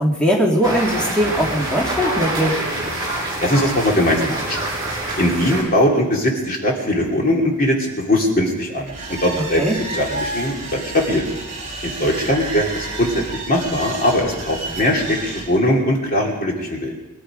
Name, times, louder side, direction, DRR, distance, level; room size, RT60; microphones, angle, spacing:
voice 1, 0.0-2.6 9.6-9.8, equal, 5° left, -4 dB, 2.2 m, -20 dB
sound 1, 0.6-5.6, right 1 dB, 20° right, 5.5 m, -25 dB
voice 2, 3.4-4.7 5.2-9.6 9.9-11.3 11.8-16.9, left 1 dB, 40° left, -1 dB, 3.2 m, -20 dB
sound 2, 8.9-15.5, right 2 dB, 35° right, 7.1 m, -31 dB
23.0 x 12.0 x 5.1 m, 1.1 s
head